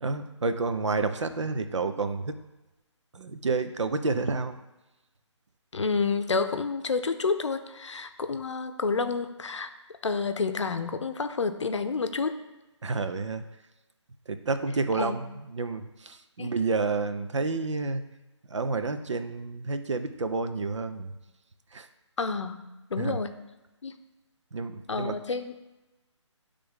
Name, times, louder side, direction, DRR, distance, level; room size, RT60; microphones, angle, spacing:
voice 1, 0.0-2.4 3.1-4.6 12.8-13.4 14.3-15.3 15.5-18.0 18.5-21.1 21.7-21.8 23.0-23.2 24.5-25.2, right 3 dB, 70° right, 9 dB, 0.6 m, -29 dB
voice 2, 5.7-9.7 10.0-12.4 14.9-15.2 16.4-16.5 22.2-23.3 23.8-23.9 24.9-25.6, left 4 dB, 70° left, 9 dB, 0.6 m, -29 dB
9.8 x 3.3 x 3.7 m, 1.0 s
figure-of-eight pair, 150°, 16 cm